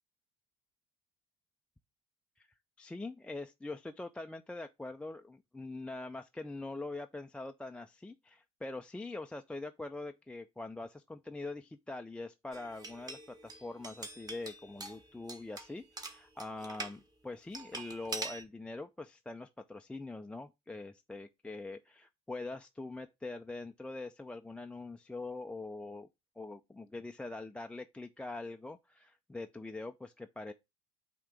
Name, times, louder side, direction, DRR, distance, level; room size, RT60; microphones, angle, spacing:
voice 1, 2.8-26.1 26.4-30.5, left 2 dB, 5° left, 0.4 m, -43 dB
sound 1, 12.5-17.0 17.5-18.4, right 2 dB, 20° right, 1.4 m, -44 dB
8.6 x 2.9 x 4.9 m
hypercardioid pair, 80°, 18 cm